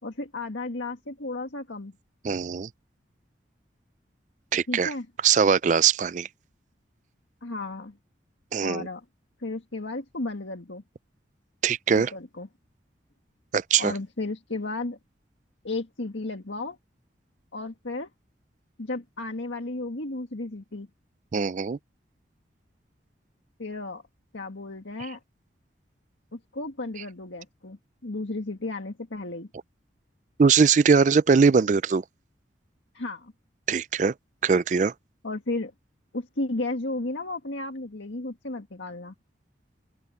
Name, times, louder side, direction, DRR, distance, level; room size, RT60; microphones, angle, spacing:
voice 1, 0.0-1.9 4.7-5.1 7.4-8.0 8.6-9.0 9.4-10.8 11.9-12.5 13.8-15.0 15.6-16.8 17.5-18.1 18.8-20.9 23.6-24.0 24.3-25.2 26.3-29.5 32.9-33.3 35.2-35.7 36.1-39.1, left 2 dB, 90° left, 1.9 m, -33 dB
voice 2, 2.2-2.7 4.5-4.9 5.2-6.3 8.5-8.9 11.6-12.1 13.5-13.9 21.3-21.8 30.4-32.0 33.7-34.1 34.4-34.9, right 5 dB, 40° right, 0.3 m, -21 dB
head